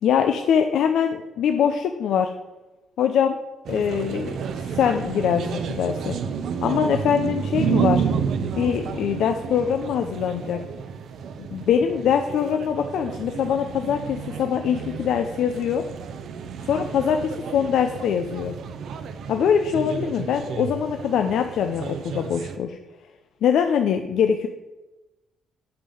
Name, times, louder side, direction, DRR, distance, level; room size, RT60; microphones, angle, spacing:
voice 1, 0.0-2.3 3.0-3.4 3.7-6.2 6.6-8.1 8.6-10.6 11.4-15.8 16.6-18.6 19.3-22.8 23.4-24.5, left 8 dB, 75° left, 6 dB, 0.6 m, -23 dB
sound 1, 3.7-22.6, right 7 dB, 70° right, 0.8 m, -30 dB
8.7 x 5.6 x 7.8 m, 1.1 s
cardioid pair, 90°, 0 cm